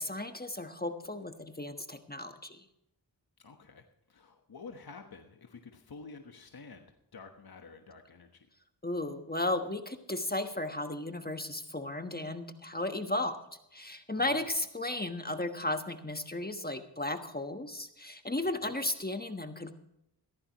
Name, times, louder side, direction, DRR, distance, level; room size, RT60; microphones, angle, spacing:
voice 1, 0.0-2.6 8.8-13.4 13.7-19.7, left 2 dB, 20° left, 7 dB, 1.3 m, -35 dB
voice 2, 3.4-3.8 4.1-6.9 7.1-8.5 14.2-14.4 18.6-18.7, left 4 dB, 60° left, 5 dB, 1.3 m, -49 dB
16.0 x 14.0 x 3.1 m, 0.82 s
cardioid pair, 45°, 41 cm